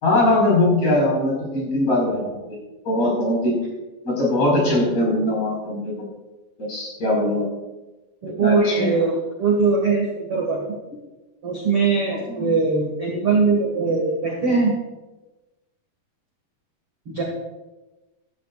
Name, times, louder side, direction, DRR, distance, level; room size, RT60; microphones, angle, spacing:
voice 1, 0.0-2.6 2.8-3.6 4.0-6.0 6.6-7.5 8.4-8.9 12.3-12.5, left 1 dB, 40° left, -3 dB, 6.1 m, -21 dB
voice 2, 8.2-10.7 11.4-14.7 17.1-17.2, right 4 dB, 45° right, -1 dB, 2.0 m, -21 dB
15.5 x 14.5 x 2.5 m, 1.1 s
omnidirectional pair, 4.9 m